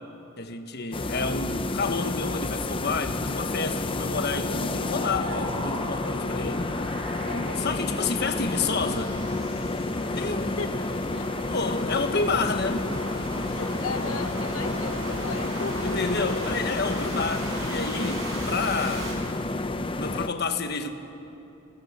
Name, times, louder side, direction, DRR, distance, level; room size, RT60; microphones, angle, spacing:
voice 1, 0.4-6.7 7.6-9.2 10.2-10.5 11.5-12.9 15.8-19.2 20.0-20.9, left 4 dB, 50° left, 6 dB, 1.3 m, -29 dB
sound 1, 0.9-20.3, left 2 dB, 25° left, 0.7 m, -30 dB
sound 2, 4.4-19.1, right 1 dB, 70° right, 6.0 m, -38 dB
voice 2, 7.3-7.7 10.4-11.3 13.5-16.0, left 4 dB, 85° left, 7 dB, 0.9 m, -36 dB
25.5 x 18.5 x 7.4 m, 2.9 s
head